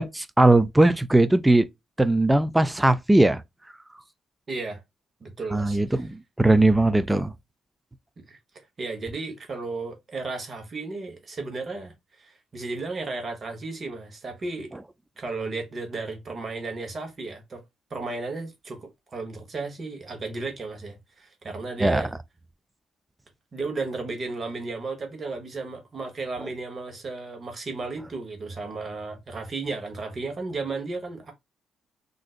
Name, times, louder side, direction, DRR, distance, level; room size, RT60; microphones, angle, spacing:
voice 1, 0.0-1.7 2.0-3.4 5.5-7.3 21.8-22.0, right 2 dB, 10° right, 0.4 m, -19 dB
voice 2, 4.5-4.8 5.2-6.1 8.3-8.4 8.8-14.7 15.2-17.6 17.9-22.1 23.5-31.3, right 3 dB, 40° right, 1.1 m, -34 dB
3.7 x 2.6 x 2.4 m
cardioid pair, 90°, 0 cm